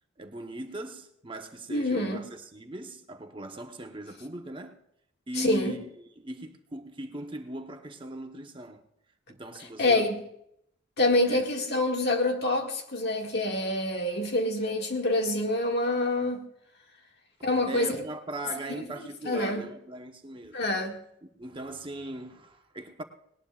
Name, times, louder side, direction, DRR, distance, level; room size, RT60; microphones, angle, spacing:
voice 1, 0.2-4.8 5.3-5.8 6.2-8.8 9.3-10.1 11.3-11.4 17.7-20.6 21.3-23.0, right 1 dB, 25° right, 1.0 m, -39 dB
voice 2, 1.7-2.3 5.4-5.8 9.8-10.2 11.0-16.4 17.4-18.0 18.7-18.9 19.2-19.7 20.5-21.0, left 2 dB, 60° left, 2.0 m, -26 dB
19.0 x 19.0 x 2.4 m
head